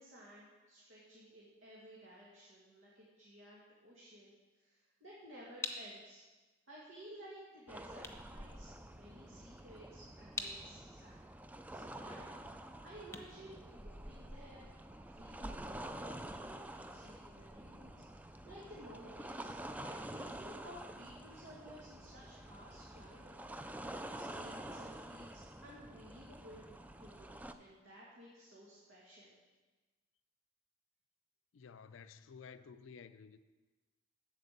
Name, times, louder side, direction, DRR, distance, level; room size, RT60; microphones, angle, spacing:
voice 1, 0.0-6.2 6.7-11.3 11.7-12.4 12.8-14.7 15.0-19.5 19.8-23.4 24.1-29.3, equal, 85° right, 2.1 m, -55 dB
sound 1, 5.6-14.4, left 3 dB, 15° left, 0.8 m, -49 dB
sound 2, 7.7-27.5, right 1 dB, 10° right, 0.3 m, -48 dB
voice 2, 31.5-33.4, left 6 dB, 85° left, 0.4 m, -53 dB
8.3 x 7.6 x 6.6 m
head